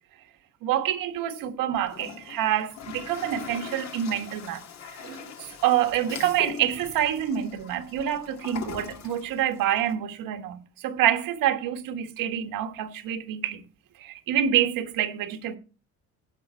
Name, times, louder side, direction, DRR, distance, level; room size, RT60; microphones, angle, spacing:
voice 1, 0.6-4.6 5.0-5.2 5.6-13.6 14.0-15.6, right 10 dB, 80° right, 1.5 m, -27 dB
Toilet flush, 1.7-9.9, left 7 dB, 55° left, 1.6 m, -41 dB
16.5 x 5.6 x 4.5 m
cardioid pair, 150°, 33 cm